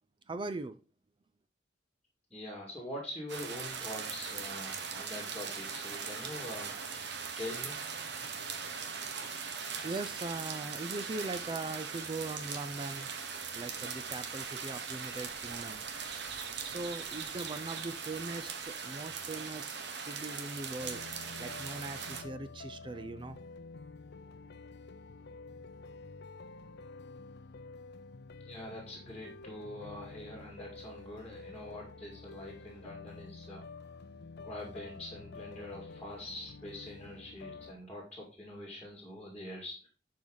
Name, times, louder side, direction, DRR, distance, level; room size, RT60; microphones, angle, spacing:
voice 1, 0.3-0.8 9.8-13.1 13.5-15.8 16.6-19.8 20.1-21.0 21.4-23.4, right 2 dB, 25° right, 10 dB, 0.5 m, -40 dB
voice 2, 2.3-6.8 7.4-7.8 28.4-33.6 34.4-39.9, left 1 dB, 5° left, -2 dB, 2.2 m, -44 dB
sound 1, 3.3-22.2, right 6 dB, 65° right, 1.2 m, -40 dB
sound 2, 20.8-37.7, left 3 dB, 60° left, 0.5 m, -49 dB
11.0 x 4.8 x 3.9 m, 0.35 s
head